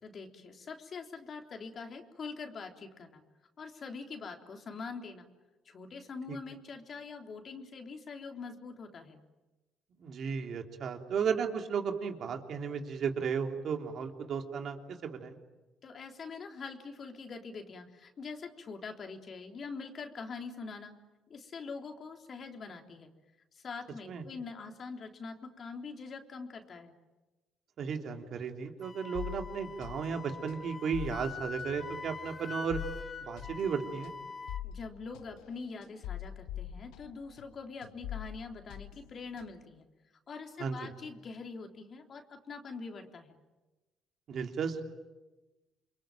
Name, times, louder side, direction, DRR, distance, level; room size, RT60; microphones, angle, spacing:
voice 1, 0.0-3.2 3.6-5.3 5.7-9.2 15.8-20.9 21.3-23.1 23.5-26.9 34.6-39.9 40.3-43.4, left 4 dB, 50° left, 3 dB, 3.6 m, -44 dB
voice 2, 10.0-14.8 15.0-15.4 24.1-24.2 27.8-32.8 33.3-34.1 40.6-40.9 44.3-44.8, right 6 dB, 60° right, 4 dB, 3.3 m, -34 dB
Wind instrument woodwind instrument, 28.8-34.6, left 4 dB, 35° left, 1.5 m, -44 dB
sound 1, 29.1-37.5 37.8-39.7, left 11 dB, 85° left, 1.2 m, -44 dB
28.5 x 23.0 x 9.1 m, 1.1 s
supercardioid pair, 65°, 0 cm